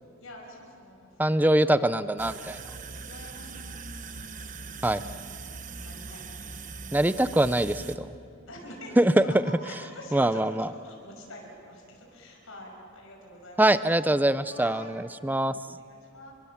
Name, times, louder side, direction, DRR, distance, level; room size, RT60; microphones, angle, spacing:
voice 1, 0.2-1.8 3.0-4.1 5.6-6.4 6.7-7.0 8.5-14.2 14.5-14.9 15.8-16.3, left 1 dB, 70° left, 0 dB, 5.9 m, -46 dB
voice 2, 1.2-2.6 4.8-5.0 6.9-8.1 9.0-9.2 10.1-10.7 13.6-15.6, right 1 dB, 10° right, 13 dB, 0.5 m, -23 dB
sound 1, 2.2-8.0, right 4 dB, 35° right, 1.0 m, -41 dB
29.5 x 23.5 x 7.3 m, 2.5 s
head